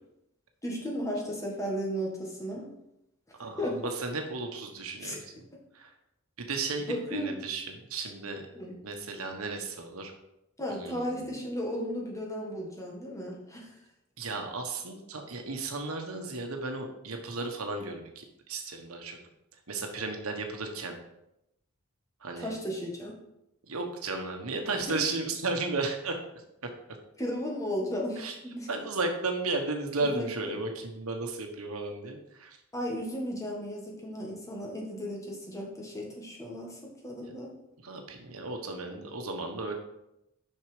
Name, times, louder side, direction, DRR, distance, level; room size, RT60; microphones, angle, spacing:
voice 1, 0.6-2.7 3.6-3.8 5.0-5.2 6.8-7.4 8.5-8.8 10.6-13.7 22.4-23.2 24.9-25.0 27.2-28.7 30.0-30.3 32.7-37.5, equal, 15° left, -1 dB, 1.6 m, -35 dB
voice 2, 3.4-5.4 5.7-5.9 6.4-8.4 8.8-10.1 10.7-11.3 14.2-19.2 19.7-21.0 22.2-22.5 23.7-26.2 28.2-28.3 28.7-32.6 37.2-37.3 37.8-39.7, right 3 dB, 85° right, 4 dB, 1.2 m, -34 dB
6.5 x 5.8 x 5.0 m, 0.84 s
head